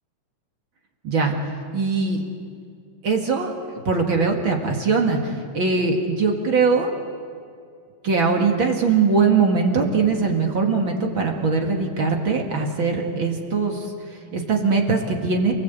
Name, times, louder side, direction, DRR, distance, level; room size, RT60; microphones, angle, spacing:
voice 1, 1.0-1.4 1.7-2.2 3.0-3.5 3.8-6.9 8.0-15.5, right 4 dB, 40° right, 1 dB, 2.5 m, -21 dB
29.0 x 18.5 x 8.3 m, 2.3 s
omnidirectional pair, 3.6 m